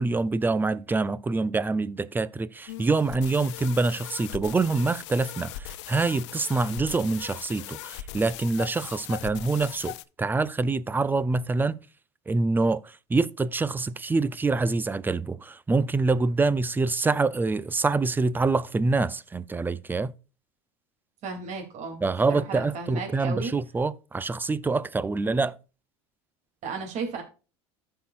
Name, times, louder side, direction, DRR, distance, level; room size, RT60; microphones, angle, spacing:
voice 1, 0.0-11.8 12.3-20.1 22.0-25.6, right 3 dB, 15° right, 0.5 m, -26 dB
sound 1, 2.7-10.0, left 14 dB, 85° left, 0.6 m, -39 dB
voice 2, 21.2-22.0 22.3-23.5 26.6-27.2, right 4 dB, 50° right, 2.8 m, -34 dB
14.5 x 5.7 x 2.4 m
supercardioid pair, 110°, 15 cm